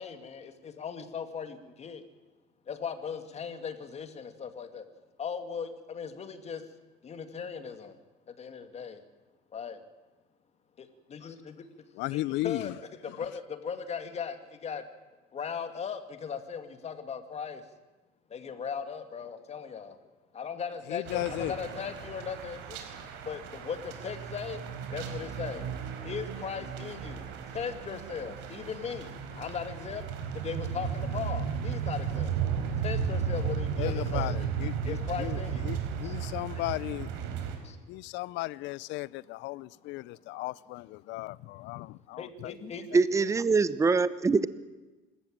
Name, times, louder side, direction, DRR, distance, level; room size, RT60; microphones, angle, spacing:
voice 1, 0.0-2.0 2.7-4.9 5.2-6.6 7.0-8.0 8.3-9.0 9.5-9.8 10.8-11.7 12.1-12.7 13.0-14.8 15.3-17.6 18.3-20.0 20.3-22.8 23.2-24.6 24.9-25.7 26.0-30.0 30.3-32.4 32.8-35.7 36.0-36.6 37.6-37.8 42.2-42.9 43.1-43.3, left 6 dB, 30° left, 2.4 m, -38 dB
voice 2, 11.9-12.8 13.1-13.2 20.9-21.6 33.8-37.1 37.9-42.6 42.9-43.0, left 18 dB, 65° left, 0.6 m, -36 dB
sound 1, 21.1-37.6, right 7 dB, 70° right, 4.3 m, -34 dB
voice 3, 42.9-44.5, right 4 dB, 15° right, 0.8 m, -24 dB
25.5 x 14.0 x 8.9 m
cardioid pair, 120°, 20 cm